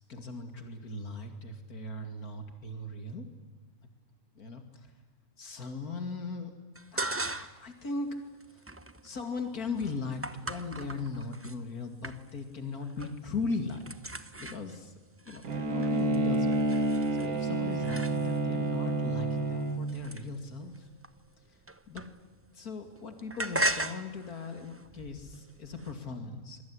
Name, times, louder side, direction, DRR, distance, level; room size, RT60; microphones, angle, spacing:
voice 1, 0.1-3.3 4.3-4.9 5.4-6.5 6.9-8.2 8.5-8.7 9.0-14.1 14.4-14.9 15.2-20.9 21.9-22.0 22.5-26.6, left 3 dB, 90° left, 6 dB, 3.0 m, -38 dB
sound 1, 6.8-7.7 8.1-11.6 12.0-12.6 12.8-13.3 13.5-18.6 19.2-22.5 22.7-25.9, right 1 dB, 15° right, 0.6 m, -38 dB
Bowed string instrument, 15.4-20.1, right 2 dB, 75° right, 2.4 m, -29 dB
26.5 x 22.5 x 9.8 m, 1.3 s
omnidirectional pair, 1.5 m